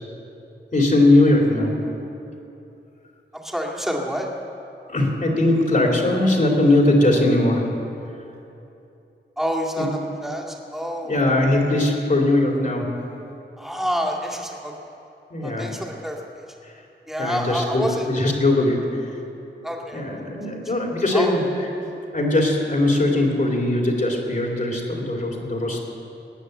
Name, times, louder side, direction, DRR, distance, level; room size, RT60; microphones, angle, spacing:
voice 1, 0.7-1.8 4.9-7.7 9.8-9.9 11.0-12.9 15.3-15.7 16.6-16.7 17.2-19.1 19.9-21.4 22.1-25.8, left 2 dB, 45° left, 0 dB, 2.8 m, -20 dB
voice 2, 3.3-4.3 9.4-11.1 13.6-14.7 15.4-16.4 17.1-18.0 19.6-20.0 21.1-21.3, equal, ahead, -2 dB, 2.1 m, -28 dB
19.5 x 9.5 x 7.9 m, 2.8 s
wide cardioid pair, 115°, 19 cm